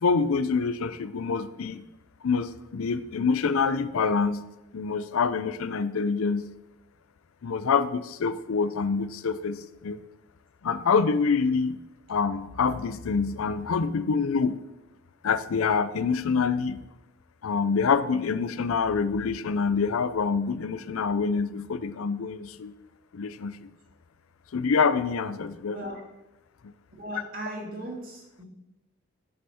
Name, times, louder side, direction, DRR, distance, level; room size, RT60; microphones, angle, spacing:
voice 1, 0.0-1.8 2.2-4.4 4.7-6.4 7.4-10.0 10.6-11.8 12.1-14.6 15.2-16.8 17.4-22.7 23.1-23.7 24.5-25.8, left 5 dB, 90° left, 13 dB, 0.5 m, -26 dB
voice 2, 25.7-26.0 26.9-28.4, right 1 dB, 45° right, 0 dB, 1.9 m, -37 dB
9.2 x 5.5 x 4.3 m, 0.95 s
head